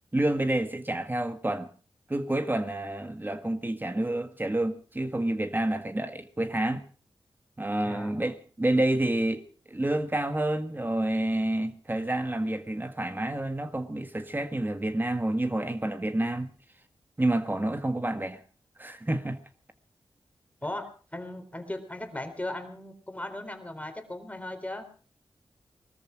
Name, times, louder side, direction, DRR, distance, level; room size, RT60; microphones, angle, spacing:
voice 1, 0.1-1.7 2.1-6.8 7.6-16.5 17.2-18.4 18.8-19.4, right 1 dB, 20° right, 1.6 m, -29 dB
voice 2, 20.6-24.9, left 1 dB, 15° left, 3.8 m, -37 dB
20.0 x 13.5 x 4.7 m
cardioid pair, 55°, 9 cm